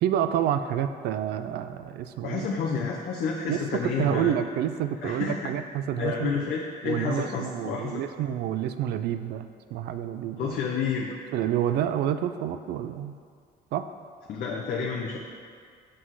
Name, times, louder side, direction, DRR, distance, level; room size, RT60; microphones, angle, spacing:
voice 1, 0.0-2.5 3.5-6.3 6.8-10.6 11.3-13.2 13.7-13.9, right 10 dB, 75° right, 10 dB, 0.5 m, -28 dB
voice 2, 2.2-4.3 5.0-5.4 6.0-8.0 10.3-11.1 14.3-15.2, left 6 dB, 60° left, -1 dB, 0.8 m, -30 dB
6.1 x 5.9 x 4.7 m, 2.1 s
cardioid pair, 110°, 17 cm